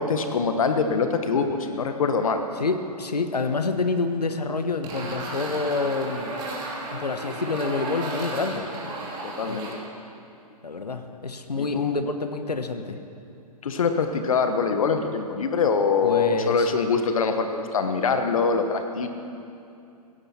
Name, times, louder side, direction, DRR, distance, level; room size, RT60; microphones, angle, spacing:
voice 1, 0.0-2.4 9.2-9.7 11.6-12.0 13.6-19.1, left 5 dB, 60° left, 7 dB, 1.3 m, -24 dB
voice 2, 2.6-6.3 6.9-8.7 9.5-9.6 10.6-13.0 16.0-16.7, left 3 dB, 75° left, 8 dB, 1.3 m, -28 dB
sound 1, 4.8-9.7, right 2 dB, 20° right, 2.8 m, -34 dB
16.5 x 15.5 x 4.4 m, 2.6 s
figure-of-eight pair, 125°, 20 cm